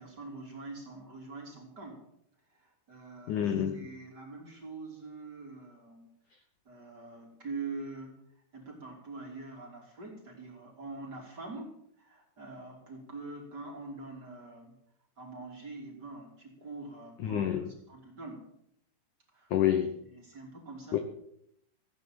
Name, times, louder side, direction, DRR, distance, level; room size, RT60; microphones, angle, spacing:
voice 1, 0.0-2.0 2.5-6.1 6.6-8.2 8.5-14.8 15.2-18.5 19.3-19.5 20.1-21.0, right 3 dB, 25° right, -1 dB, 3.0 m, -44 dB
voice 2, 3.3-3.7 17.2-17.8 19.5-20.0 20.9-21.0, left 10 dB, 75° left, 8 dB, 1.8 m, -28 dB
16.0 x 9.2 x 7.7 m, 0.74 s
omnidirectional pair, 4.9 m